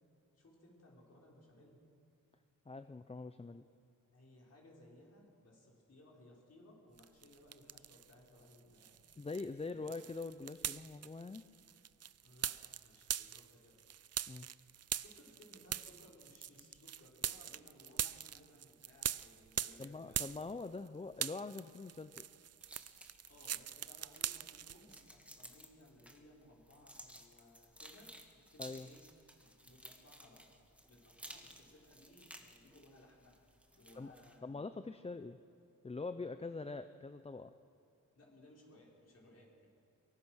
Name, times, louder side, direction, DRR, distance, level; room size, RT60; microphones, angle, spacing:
voice 1, 0.3-1.8 4.1-9.0 9.7-9.8 12.2-13.8 14.9-20.5 23.3-29.1 29.4-30.5 30.9-33.4 33.7-34.5 38.1-39.7, left 1 dB, 50° left, -3 dB, 5.5 m, -62 dB
voice 2, 2.7-3.6 9.2-11.4 14.3-14.5 19.8-22.2 28.6-28.9 34.0-34.1 34.4-35.4 35.8-37.5, left 3 dB, 20° left, 10 dB, 0.5 m, -44 dB
sound 1, 7.0-8.1 8.5-20.9 21.1-25.0, right 9 dB, 50° right, 0.4 m, -42 dB
sound 2, 22.6-34.4, equal, 5° right, 1.7 m, -57 dB
23.5 x 23.0 x 6.3 m, 2.8 s
wide cardioid pair, 125°, 33 cm